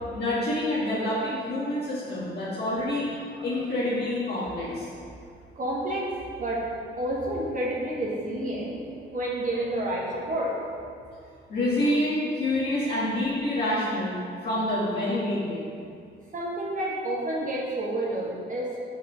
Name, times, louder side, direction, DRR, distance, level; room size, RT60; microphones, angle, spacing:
voice 1, 0.1-3.0 3.4-4.8 11.5-14.1 14.4-15.7, left 1 dB, 55° left, -9 dB, 1.6 m, -27 dB
voice 2, 5.6-6.1 6.4-6.6 7.0-8.7 9.1-10.6 16.3-18.8, right 1 dB, 40° right, -4 dB, 1.2 m, -29 dB
5.1 x 4.9 x 5.4 m, 2.4 s
cardioid pair, 90°, 20 cm